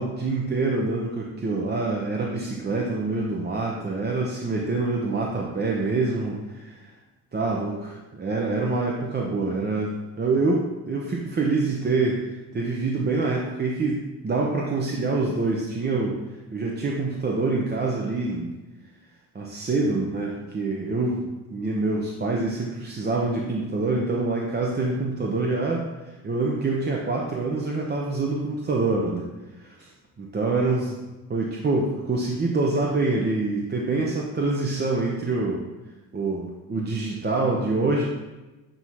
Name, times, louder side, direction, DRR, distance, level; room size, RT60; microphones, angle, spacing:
voice 1, 0.0-6.9 7.3-12.2 12.5-16.2 16.5-18.6 19.3-29.3 29.6-29.9 30.2-31.0 31.3-35.6 36.1-38.0, right 3 dB, 30° right, -1 dB, 0.8 m, -26 dB
7.8 x 2.8 x 4.6 m, 1.1 s
cardioid pair, 90°, 35 cm